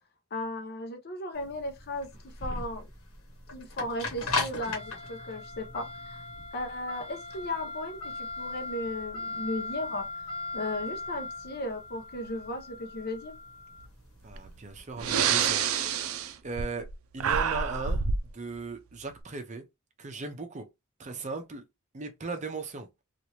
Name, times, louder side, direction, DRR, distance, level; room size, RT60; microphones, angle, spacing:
voice 1, 0.3-2.9 3.5-6.2 6.5-10.1 10.5-13.4, left 1 dB, 50° left, 0.7 m, -36 dB
sound 1, 1.4-15.5, left 3 dB, 85° left, 1.2 m, -38 dB
voice 2, 14.2-15.9 16.4-16.9 17.1-18.0 18.3-19.6 20.0-20.7 21.0-21.6 21.9-22.9, right 4 dB, 35° right, 0.6 m, -37 dB
Breathing, 14.3-14.5 14.9-16.9 17.2-18.3, right 6 dB, 80° right, 0.4 m, -27 dB
2.9 x 2.5 x 2.9 m
head